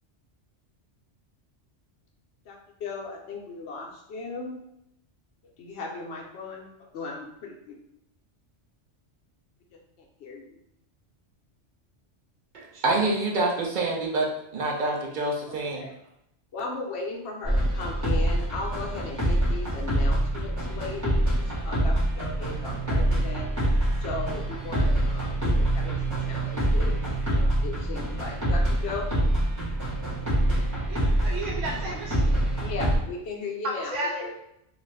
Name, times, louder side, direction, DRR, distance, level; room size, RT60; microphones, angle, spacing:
voice 1, 2.5-4.6 5.6-7.8 10.0-10.5 15.5-15.9 16.5-23.5 24.0-29.1 31.8-31.9 32.5-34.3, left 3 dB, 65° left, 0 dB, 0.8 m, -37 dB
voice 2, 12.5-15.9, right 2 dB, 55° right, -2 dB, 0.6 m, -27 dB
sound 1, 17.4-33.0, right 1 dB, 15° right, 0.9 m, -25 dB
voice 3, 30.9-32.2 33.6-34.3, right 1 dB, 85° right, -1 dB, 1.1 m, -32 dB
2.5 x 2.4 x 3.2 m, 0.79 s
omnidirectional pair, 1.2 m